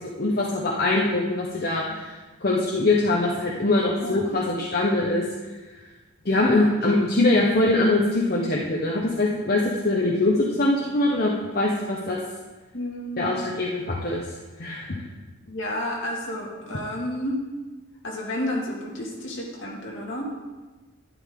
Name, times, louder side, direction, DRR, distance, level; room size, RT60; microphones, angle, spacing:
voice 1, 0.0-2.1 2.4-5.2 6.2-12.2 13.2-14.2 14.6-14.9, left 2 dB, 45° left, -3 dB, 1.0 m, -23 dB
voice 2, 4.0-4.4 6.4-6.7 12.7-13.3 15.5-17.4 18.0-20.2, left 1 dB, 60° left, -2 dB, 2.2 m, -31 dB
11.5 x 10.5 x 3.8 m, 1.3 s
head